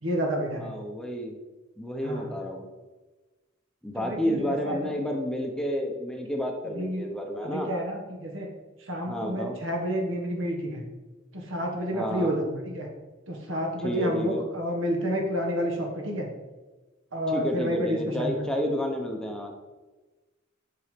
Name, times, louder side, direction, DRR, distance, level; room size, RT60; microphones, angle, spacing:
voice 1, 0.0-0.7 2.0-2.3 3.9-5.0 6.6-7.1 7.4-8.5 8.9-10.8 11.3-12.9 13.3-16.3 17.1-18.4, equal, 70° right, 1 dB, 1.7 m, -30 dB
voice 2, 0.6-1.4 1.8-2.6 3.8-7.7 9.1-9.6 11.9-12.3 13.8-14.4 17.3-19.5, equal, 5° left, 2 dB, 0.9 m, -30 dB
7.2 x 6.1 x 5.2 m, 1.2 s
head